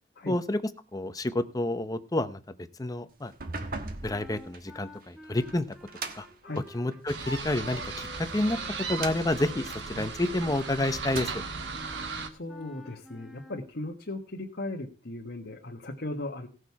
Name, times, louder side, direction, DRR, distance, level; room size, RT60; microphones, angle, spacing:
voice 1, 0.3-0.6 0.9-2.4 2.8-3.3 4.0-5.7 6.1-6.3 6.7-8.6 8.9-11.4, left 1 dB, 20° left, 10 dB, 0.8 m, -29 dB
sound 1, 3.3-7.3 7.9-10.6 11.0-11.7, right 3 dB, 55° right, 1.3 m, -41 dB
sound 2, 4.0-13.7, left 1 dB, ahead, 1.1 m, -51 dB
sound 3, 7.1-12.3, right 4 dB, 85° right, 1.4 m, -36 dB
voice 2, 12.3-16.5, left 2 dB, 65° left, -1 dB, 1.4 m, -37 dB
17.0 x 6.5 x 4.7 m, 0.36 s
head